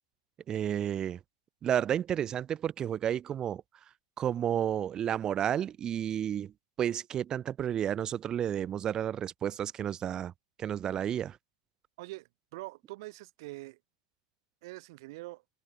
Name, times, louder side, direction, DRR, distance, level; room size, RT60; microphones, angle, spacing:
voice 1, 0.5-1.2 1.6-3.6 4.2-6.5 6.8-10.3 10.6-11.4, right 9 dB, 25° right, 1.5 m, -31 dB
voice 2, 12.0-13.8 14.6-15.4, right 21 dB, 55° right, 6.6 m, -44 dB
open air
hypercardioid pair, 115°, 3 cm